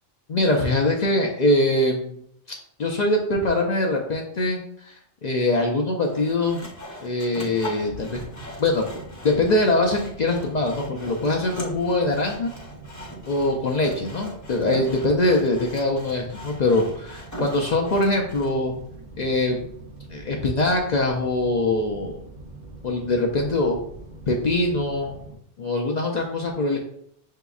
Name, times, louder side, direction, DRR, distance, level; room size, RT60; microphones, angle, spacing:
voice 1, 0.3-2.2 2.8-6.6 7.0-8.2 8.6-8.8 9.2-12.5 13.3-18.7 19.2-19.6 20.1-22.2 22.8-23.8 24.3-25.2 25.6-26.8, left 2 dB, 60° left, 0 dB, 0.4 m, -23 dB
Sawing, 6.1-18.5, equal, 20° left, 0.6 m, -40 dB
sound 1, 7.8-25.4, right 2 dB, 50° right, 0.6 m, -44 dB
5.9 x 2.8 x 2.3 m, 0.71 s
omnidirectional pair, 1.2 m